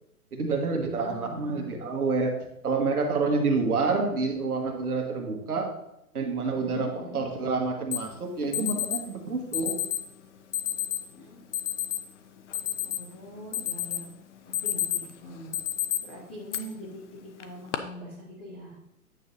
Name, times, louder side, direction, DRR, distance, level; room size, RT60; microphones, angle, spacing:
voice 1, 0.3-2.3 2.6-5.7 6.1-9.7, right 4 dB, 75° right, 2 dB, 1.7 m, -28 dB
voice 2, 0.9-1.7 6.5-7.2 8.4-8.8 11.1-11.4 12.8-14.1 14.5-15.5 16.0-17.0 17.4-18.8, equal, 10° left, -7 dB, 0.4 m, -42 dB
Alarm, 7.9-8.0 8.5-9.0 9.5-10.0 10.5-11.0 11.5-12.0 12.4-13.2 13.5-14.0 14.4-15.1 15.5-16.0 16.5-16.6 17.4-17.8, left 11 dB, 50° left, 0.8 m, -29 dB
9.3 x 6.4 x 2.7 m, 0.81 s
figure-of-eight pair, 125°, 45 cm